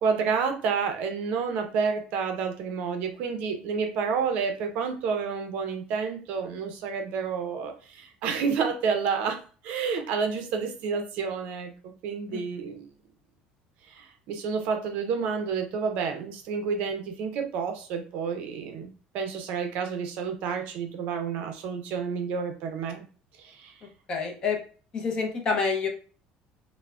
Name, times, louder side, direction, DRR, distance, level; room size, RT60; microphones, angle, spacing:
voice 1, 0.0-9.4 9.6-11.7 12.0-12.9 13.9-18.9 19.1-23.0 23.4-23.7, right 5 dB, 55° right, 6 dB, 0.5 m, -29 dB
voice 2, 24.1-24.6 24.9-25.9, left 5 dB, 25° left, 2 dB, 0.5 m, -28 dB
3.3 x 2.0 x 2.4 m, 0.38 s
cardioid pair, 175°, 3 cm